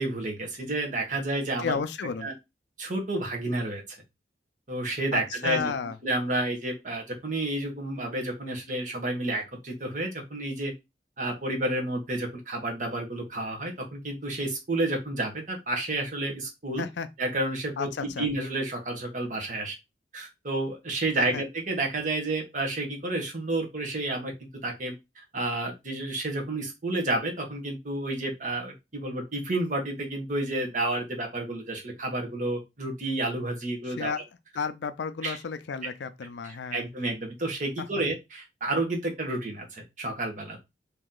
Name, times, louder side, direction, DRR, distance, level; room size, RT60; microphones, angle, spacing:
voice 1, 0.0-1.8 2.2-2.3 2.8-3.8 4.7-5.7 6.0-10.7 11.2-16.8 17.2-19.8 20.1-24.3 24.6-24.9 25.3-34.2 35.2-35.4 36.4-40.6, right 2 dB, 45° right, 1.1 m, -30 dB
voice 2, 1.6-2.3 5.1-6.0 16.8-17.1 17.8-18.3 21.2-21.4 33.9-34.2 34.5-36.8 37.8-37.9, left 5 dB, 80° left, 0.4 m, -32 dB
3.0 x 2.7 x 3.7 m
head